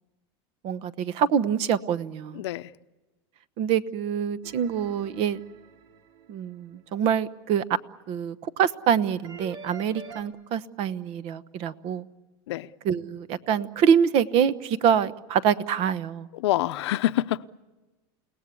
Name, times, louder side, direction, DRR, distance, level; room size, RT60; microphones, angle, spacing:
voice 1, 0.6-2.4 3.6-5.4 6.3-7.6 8.1-12.0 12.8-16.3, right 8 dB, 50° right, 1.1 m, -25 dB
voice 2, 2.3-2.7 12.5-12.7 16.3-17.5, left 14 dB, 85° left, 0.8 m, -26 dB
sound 1, 4.4-6.6 9.2-10.2, right 4 dB, 90° right, 2.7 m, -45 dB
30.0 x 18.5 x 8.5 m
supercardioid pair, 140°, 14 cm